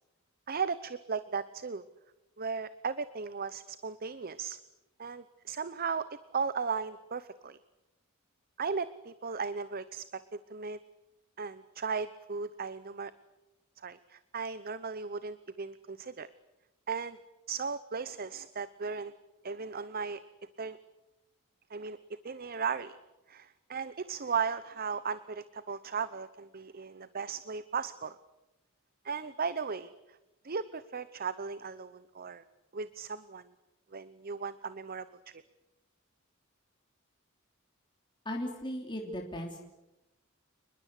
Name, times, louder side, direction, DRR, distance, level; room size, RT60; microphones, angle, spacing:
voice 1, 0.5-1.8 2.4-4.6 5.0-7.6 8.6-10.8 11.4-13.1 13.8-16.3 16.9-17.2 17.5-19.1 19.4-20.2 20.6-20.8 21.7-22.0 22.2-23.0 23.3-28.2 29.0-30.2 30.4-32.4 32.7-33.5 33.9-35.4, right 5 dB, 45° right, 14 dB, 0.8 m, -36 dB
voice 2, 38.2-39.6, left 1 dB, 20° left, 0 dB, 3.2 m, -37 dB
29.0 x 21.0 x 8.2 m, 0.98 s
head